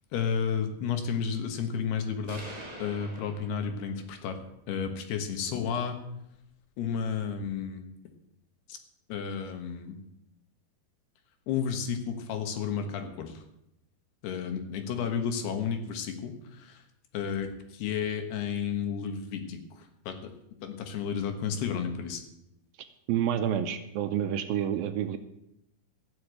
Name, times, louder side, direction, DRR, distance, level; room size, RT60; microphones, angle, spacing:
voice 1, 0.1-2.4 2.8-4.4 4.7-6.0 6.8-7.8 8.7-8.8 9.1-10.0 11.5-13.4 14.2-16.8 17.1-19.6 20.1-20.3 20.6-22.2, left 7 dB, 80° left, 6 dB, 3.5 m, -32 dB
sound 1, 2.3-4.2, right 1 dB, 35° right, 0.6 m, -45 dB
voice 2, 23.1-25.2, right 9 dB, 75° right, 8 dB, 2.4 m, -28 dB
14.5 x 7.1 x 8.1 m, 0.81 s
omnidirectional pair, 4.6 m